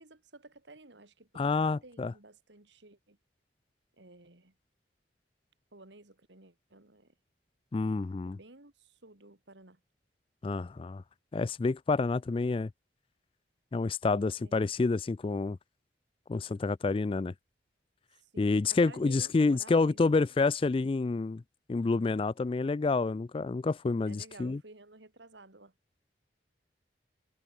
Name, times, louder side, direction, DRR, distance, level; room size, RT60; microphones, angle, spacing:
voice 1, 0.0-1.5 1.8-3.2 4.0-4.5 5.7-7.1 8.2-9.8 14.4-14.5 18.2-20.0 20.3-20.4 24.1-25.7, right 2 dB, 80° right, 2.7 m, -54 dB
voice 2, 1.4-2.1 7.7-8.4 10.4-11.0 11.3-12.7 13.7-15.6 16.3-17.3 18.4-21.4 21.7-24.6, left 3 dB, 30° left, 0.3 m, -28 dB
head